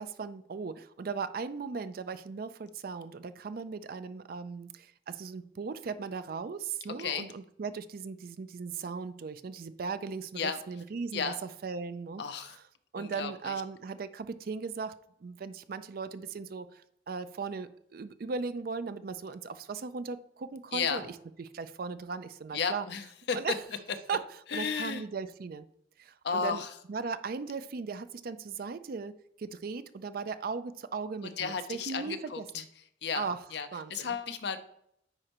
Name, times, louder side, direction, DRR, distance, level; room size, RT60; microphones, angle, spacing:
voice 1, 0.0-12.2 12.9-21.0 21.4-22.9 23.3-23.6 24.1-24.2 24.5-25.7 26.0-26.6 26.9-32.6 33.1-33.4 33.7-34.2, right 5 dB, 50° right, 13 dB, 0.4 m, -38 dB
voice 2, 12.2-12.6 13.0-13.5 20.7-21.1 22.5-23.4 24.5-25.0 26.2-26.7 31.2-32.6 33.0-34.6, left 6 dB, 60° left, 9 dB, 0.6 m, -33 dB
9.7 x 4.4 x 3.0 m, 0.71 s
head